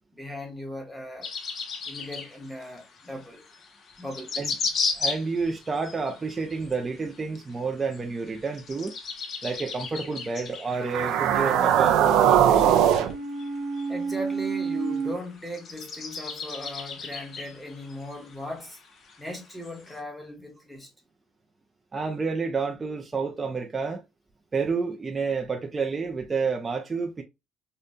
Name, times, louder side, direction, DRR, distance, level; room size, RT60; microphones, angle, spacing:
voice 1, 0.1-1.3 1.8-3.4 4.0-4.3 13.9-18.8 19.2-20.9, left 1 dB, 5° left, 1.1 m, -38 dB
sound 1, 1.2-20.0, left 4 dB, 45° left, 0.8 m, -36 dB
voice 2, 4.9-9.0 9.4-12.6 21.9-24.0 24.5-27.2, right 4 dB, 20° right, 0.5 m, -29 dB
sound 2, 10.8-15.1, right 9 dB, 85° right, 0.6 m, -22 dB
5.1 x 2.2 x 2.6 m
cardioid pair, 135°, 0 cm